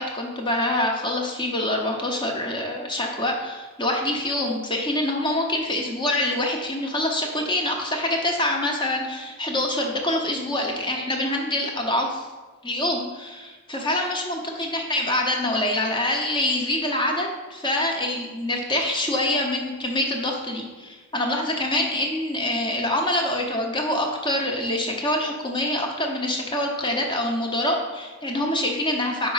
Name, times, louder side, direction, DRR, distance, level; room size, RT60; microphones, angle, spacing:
voice 1, 0.0-12.3 12.6-29.3, left 1 dB, 20° left, 2 dB, 0.9 m, -25 dB
5.2 x 4.5 x 5.6 m, 1.3 s
head